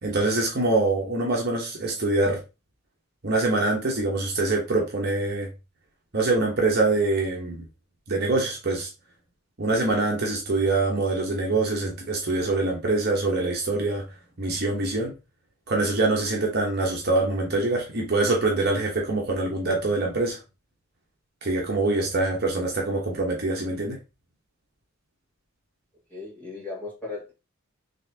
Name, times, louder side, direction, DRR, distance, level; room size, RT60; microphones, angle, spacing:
voice 1, 0.0-2.4 3.2-5.5 6.1-7.6 8.1-8.9 9.6-14.0 14.4-15.1 15.7-20.4 21.4-24.0, right 2 dB, 45° right, 1.0 m, -24 dB
voice 2, 26.1-27.3, left 3 dB, 10° left, 2.0 m, -36 dB
4.0 x 3.3 x 2.7 m
head